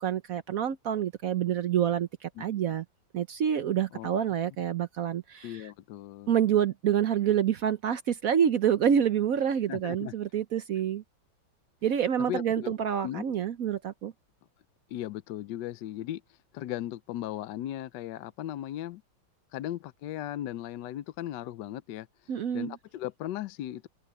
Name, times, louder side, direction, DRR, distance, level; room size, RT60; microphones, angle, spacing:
voice 1, 0.0-2.8 3.1-5.7 6.3-11.0 11.8-14.1 22.3-22.8, right 9 dB, 65° right, 0.9 m, -27 dB
voice 2, 5.4-6.3 9.7-10.1 12.3-12.7 13.0-13.2 14.9-16.2 16.5-19.0 19.5-22.1 22.5-23.9, left 13 dB, 70° left, 1.1 m, -37 dB
omnidirectional pair, 2.2 m